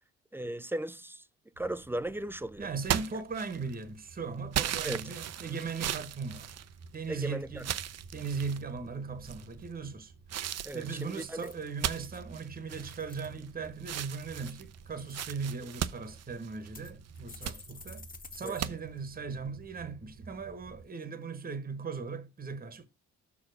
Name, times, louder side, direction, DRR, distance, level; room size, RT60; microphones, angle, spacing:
voice 1, 0.3-1.2 1.6-2.7 4.8-5.1 7.1-7.6 10.6-11.5 18.4-18.6, right 1 dB, 10° right, 0.3 m, -37 dB
sound 1, 1.5-20.9, right 4 dB, 75° right, 1.3 m, -53 dB
voice 2, 2.6-6.6 6.9-7.7 8.1-10.1 10.7-18.0 18.3-22.8, right 5 dB, 30° right, 1.1 m, -38 dB
sound 2, 2.8-3.8 4.5-7.1 7.6-8.6 9.2-9.7 10.3-13.5 13.8-16.8 17.2-17.6 18.6-18.7, right 11 dB, 60° right, 0.6 m, -36 dB
sound 3, 5.3-5.9 6.4-6.8 11.2-12.2 12.7-13.4 13.9-14.5 14.9-15.3 16.1-16.2 16.7-18.7 19.0-19.1 19.4-19.5, left 4 dB, 30° left, 1.1 m, -51 dB
5.8 x 4.8 x 6.1 m
cardioid pair, 90°, 30 cm